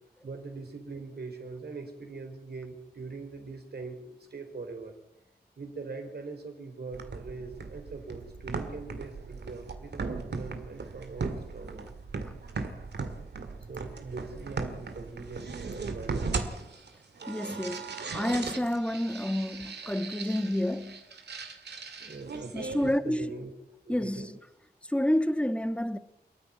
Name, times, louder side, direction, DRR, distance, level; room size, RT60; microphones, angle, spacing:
voice 1, 0.2-5.0 5.6-11.9 13.7-16.5 22.0-23.5 23.9-24.4, right 3 dB, 70° right, 4.4 m, -42 dB
sound 1, 6.9-22.9, right 4 dB, 90° right, 2.0 m, -38 dB
voice 2, 17.3-21.0 22.5-23.3 23.9-24.4 24.9-26.0, left 1 dB, 5° left, 1.4 m, -29 dB
28.5 x 9.8 x 9.6 m
cardioid pair, 45°, 17 cm